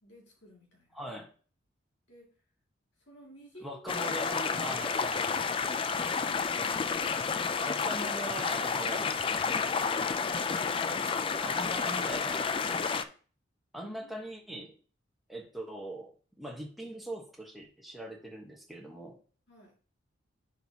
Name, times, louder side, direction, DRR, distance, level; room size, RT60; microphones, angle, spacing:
voice 1, 0.0-1.1 2.1-2.4 3.0-4.2 13.8-14.1 19.5-19.8, equal, 65° left, -1 dB, 2.3 m, -53 dB
voice 2, 0.9-1.3 3.6-5.5 7.6-9.2 10.8-13.1 13.7-14.8 15.3-19.2, right 1 dB, ahead, -1 dB, 1.2 m, -42 dB
sound 1, 3.9-13.0, left 5 dB, 25° left, 0.3 m, -30 dB
10.5 x 4.5 x 2.8 m, 0.40 s
head